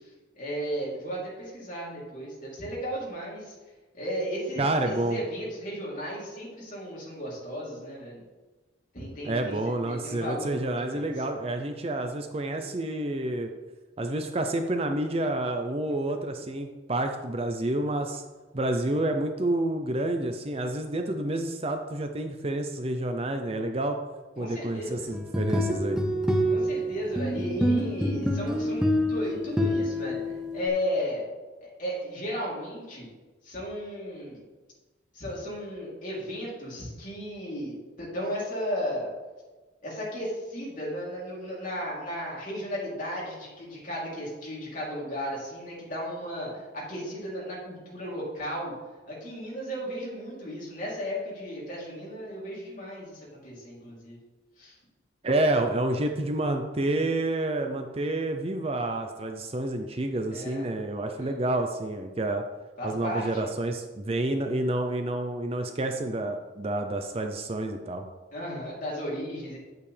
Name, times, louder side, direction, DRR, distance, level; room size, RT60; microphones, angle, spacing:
voice 1, 0.3-3.5 3.9-4.6 5.0-8.2 8.9-11.1 24.3-25.1 26.4-31.2 31.6-33.1 33.4-34.4 35.1-39.1 39.8-48.7 49.1-54.2 54.6-54.7 60.3-60.7 61.1-61.3 62.8-63.5 68.3-69.6, equal, 40° left, -6 dB, 3.2 m, -35 dB
voice 2, 4.6-5.2 9.2-13.5 14.0-18.2 18.5-24.0 24.4-26.0 55.2-62.4 62.8-68.0, right 1 dB, 30° right, 5 dB, 0.5 m, -29 dB
sound 1, 25.1-30.7, equal, 5° right, 1.0 m, -27 dB
9.2 x 8.3 x 3.4 m, 1.2 s
head